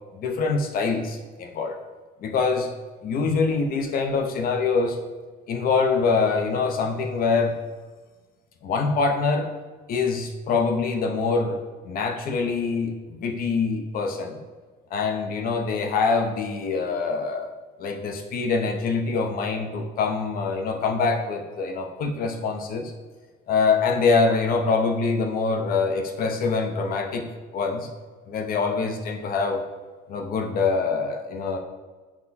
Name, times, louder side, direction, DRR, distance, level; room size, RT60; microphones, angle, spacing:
voice 1, 0.1-1.8 2.2-2.7 3.0-5.0 5.5-7.6 8.6-9.5 9.9-14.4 14.9-17.5 17.8-22.9 23.5-27.3 27.5-27.9 28.3-29.6 30.1-31.6, left 4 dB, 60° left, 4 dB, 0.6 m, -24 dB
5.9 x 2.2 x 4.1 m, 1.4 s
cardioid pair, 110°, 17 cm